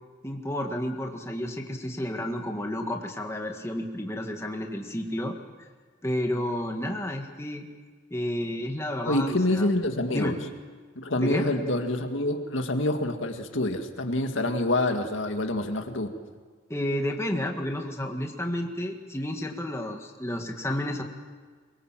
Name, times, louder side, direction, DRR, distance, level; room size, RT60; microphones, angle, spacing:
voice 1, 0.2-5.7 6.0-7.7 8.1-9.7 10.1-10.3 11.2-11.5 16.7-21.0, left 1 dB, 15° left, 2 dB, 1.8 m, -31 dB
voice 2, 9.1-10.4 11.0-16.1, left 1 dB, 75° left, 5 dB, 2.0 m, -27 dB
23.5 x 23.0 x 7.6 m, 1.5 s
head